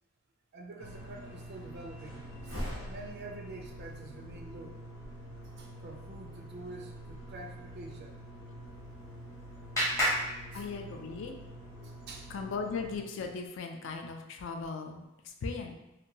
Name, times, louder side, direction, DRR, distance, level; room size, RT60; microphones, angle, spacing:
voice 1, 0.5-4.8 5.6-8.2 10.5-10.6 11.8-12.3, right 2 dB, 50° right, 2 dB, 0.3 m, -47 dB
sound 1, 0.8-13.0, equal, 90° left, 0.8 m, -45 dB
Clapping, 8.6-11.3, equal, 15° left, 0.7 m, -34 dB
voice 2, 10.5-11.3 12.3-15.7, left 4 dB, 60° left, 3 dB, 0.3 m, -38 dB
2.8 x 2.2 x 2.6 m, 0.94 s
head